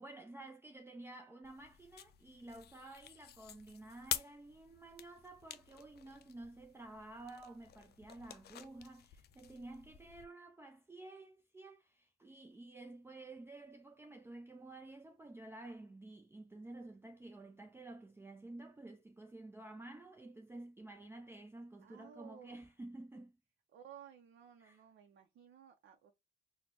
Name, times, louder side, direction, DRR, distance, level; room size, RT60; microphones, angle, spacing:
voice 1, 0.0-23.3 24.6-24.8, right 2 dB, 10° right, 0.4 m, -52 dB
sound 1, 1.4-10.3, left 10 dB, 55° left, 0.4 m, -48 dB
voice 2, 21.8-22.6 23.7-26.1, right 9 dB, 60° right, 0.6 m, -57 dB
4.2 x 2.1 x 2.7 m
cardioid pair, 90°, 20 cm